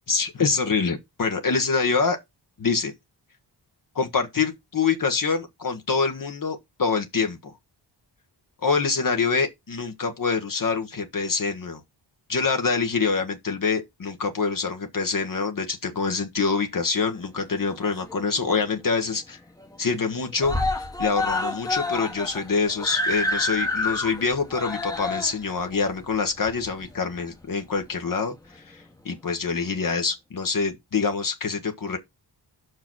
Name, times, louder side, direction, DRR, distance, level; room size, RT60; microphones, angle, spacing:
voice 1, 0.1-2.2 2.6-2.9 3.9-7.5 8.6-11.8 12.3-19.4 19.8-32.0, left 5 dB, 45° left, 1.2 m, -25 dB
Screaming, 17.5-18.4 18.8-18.9 19.2-19.3 19.6-20.1 20.4-27.2 28.1-28.2, left 2 dB, 10° left, 1.1 m, -29 dB
5.9 x 4.8 x 6.1 m
wide cardioid pair, 155°, 44 cm